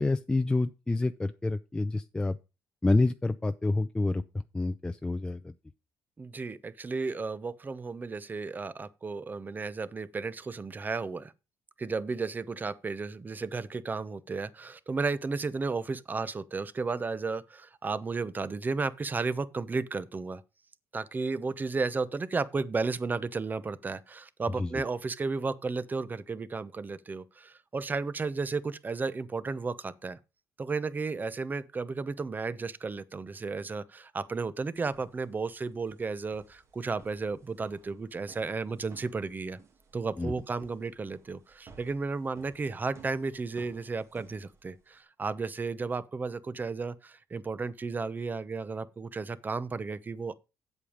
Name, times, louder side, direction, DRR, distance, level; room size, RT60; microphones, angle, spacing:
voice 1, 0.0-2.4 2.8-4.2 4.5-5.5 24.6-24.7 40.2-40.3, left 2 dB, 10° left, 0.6 m, -28 dB
voice 2, 6.2-11.3 11.8-20.4 20.9-30.2 30.6-39.6 39.9-50.3, right 4 dB, 25° right, 0.8 m, -33 dB
sound 1, 34.8-45.0, right 5 dB, 45° right, 2.1 m, -58 dB
8.3 x 7.2 x 5.1 m
cardioid pair, 95°, 7 cm